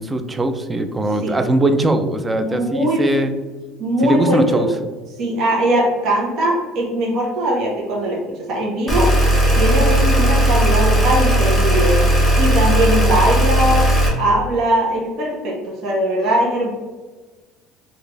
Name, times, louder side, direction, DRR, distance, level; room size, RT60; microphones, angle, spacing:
voice 1, 0.0-3.3 4.0-4.7, right 1 dB, 15° right, 8 dB, 0.4 m, -20 dB
voice 2, 2.4-3.0 3.8-4.7 5.2-9.1 9.5-13.8 14.2-16.7, right 1 dB, 60° right, -2 dB, 1.0 m, -20 dB
sound 1, 8.9-14.1, equal, ahead, 1.3 m, -16 dB
4.2 x 2.6 x 3.2 m, 1.3 s
cardioid pair, 125°, 0 cm